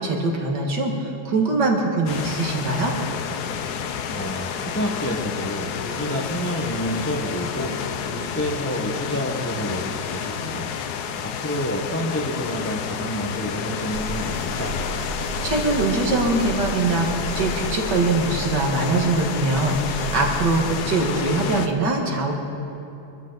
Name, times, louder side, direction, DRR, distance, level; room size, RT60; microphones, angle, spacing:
voice 1, 0.0-2.9 15.2-22.3, right 3 dB, 55° right, 0 dB, 2.2 m, -23 dB
sound 1, 2.1-21.7, left 7 dB, 65° left, 1.0 m, -30 dB
voice 2, 4.1-7.8 8.1-10.8 11.2-14.7, equal, 10° left, 0 dB, 0.7 m, -29 dB
sound 2, 13.9-20.8, equal, 80° left, 2.1 m, -33 dB
24.0 x 13.5 x 4.0 m, 2.8 s
omnidirectional pair, 2.3 m